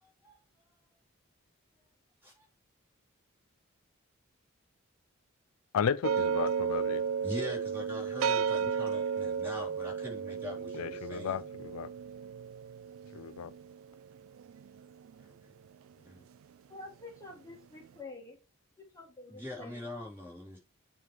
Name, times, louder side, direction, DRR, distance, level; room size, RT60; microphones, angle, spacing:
voice 1, 0.0-0.4 2.2-2.4 7.2-11.4 15.4-15.5 15.9-16.2 19.3-20.6, left 1 dB, 10° right, 3.3 m, -43 dB
voice 2, 5.7-7.0 10.7-11.9 13.1-13.5, left 7 dB, 90° left, 0.4 m, -34 dB
sound 1, 6.0-15.2, right 6 dB, 70° right, 0.3 m, -33 dB
voice 3, 16.7-18.4 18.9-19.9, left 2 dB, 15° left, 1.6 m, -48 dB
8.9 x 3.2 x 4.7 m
head